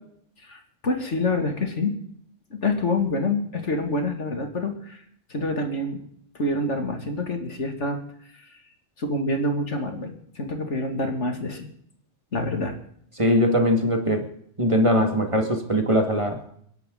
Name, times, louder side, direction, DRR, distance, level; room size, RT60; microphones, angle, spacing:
voice 1, 0.4-2.0 2.5-5.0 5.3-6.0 6.3-8.0 8.3-8.6 9.0-11.7 12.3-12.8, left 2 dB, 70° left, 4 dB, 2.6 m, -27 dB
voice 2, 13.2-14.3 14.6-16.4, equal, 25° right, 4 dB, 2.1 m, -21 dB
28.5 x 11.0 x 3.9 m, 0.68 s
omnidirectional pair, 1.3 m